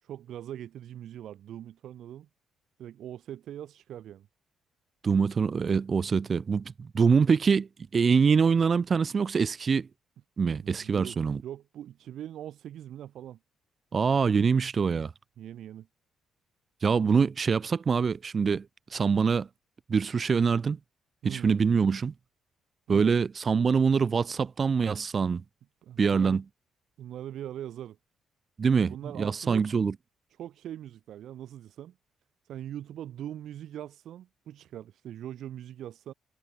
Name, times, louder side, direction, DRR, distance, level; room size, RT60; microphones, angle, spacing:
voice 1, 0.0-2.3 2.8-4.3 10.6-13.4 15.4-15.9 21.2-21.6 22.9-23.1 25.8-26.4 27.0-28.0 28.7-29.7 30.4-32.0 32.4-36.1, right 11 dB, 75° right, 2.4 m, -41 dB
voice 2, 5.0-9.9 10.4-11.4 13.9-15.1 16.8-18.7 18.9-19.5 19.9-20.8 21.2-22.1 22.9-25.4 26.0-26.4 28.6-29.9, right 5 dB, 40° right, 1.0 m, -24 dB
cardioid pair, 90°, 0 cm